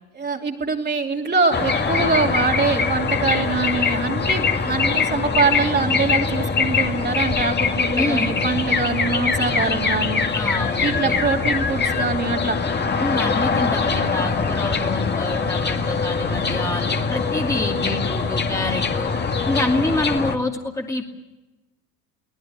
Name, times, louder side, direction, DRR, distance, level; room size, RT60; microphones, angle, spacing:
voice 1, 0.1-10.2 10.8-12.6, right 4 dB, 25° right, 1 dB, 3.1 m, -23 dB
sound 1, 1.5-20.4, left 5 dB, 25° left, 2.3 m, -23 dB
voice 2, 8.0-8.4 10.3-11.2 13.0-19.1 19.5-21.0, left 2 dB, 5° left, 1 dB, 2.6 m, -26 dB
23.5 x 18.5 x 9.6 m, 1.1 s
hypercardioid pair, 70°, 43 cm